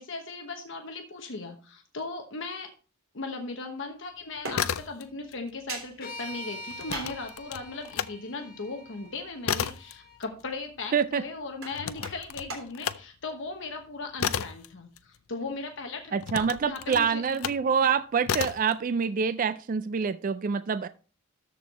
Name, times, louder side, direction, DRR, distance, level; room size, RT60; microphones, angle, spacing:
voice 1, 0.0-2.7 3.1-17.2, left 3 dB, 60° left, 4 dB, 1.1 m, -38 dB
sound 1, 4.4-5.4 5.7-8.1 8.5-15.6 16.2-17.7 18.2-18.7, left 8 dB, 75° left, 0.5 m, -33 dB
sound 2, 4.4-4.8 5.7-6.0 6.9-7.3 8.3-8.4 9.0-9.1 11.5-12.2 12.5-12.6, right 3 dB, 70° right, 3.1 m, -38 dB
sound 3, 6.0-10.2, left 1 dB, 45° left, 1.4 m, -44 dB
voice 2, 10.9-11.2 16.1-20.9, right 6 dB, 40° right, 13 dB, 0.3 m, -26 dB
13.5 x 4.6 x 4.1 m, 0.36 s
head